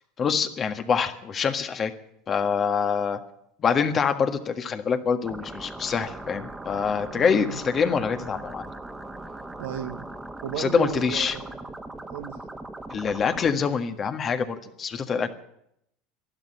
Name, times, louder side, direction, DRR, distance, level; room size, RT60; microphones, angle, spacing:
voice 1, 0.2-1.9 2.3-3.2 3.6-8.6 10.6-11.4 12.9-15.3, left 6 dB, 35° left, 8 dB, 1.6 m, -25 dB
sound 1, 5.2-13.5, right 2 dB, 10° right, 1.7 m, -39 dB
voice 2, 7.1-7.6 9.6-10.1 10.4-11.6 12.1-12.4, right 11 dB, 70° right, 9 dB, 1.4 m, -34 dB
12.0 x 12.0 x 9.9 m, 0.75 s
hypercardioid pair, 80°, 0 cm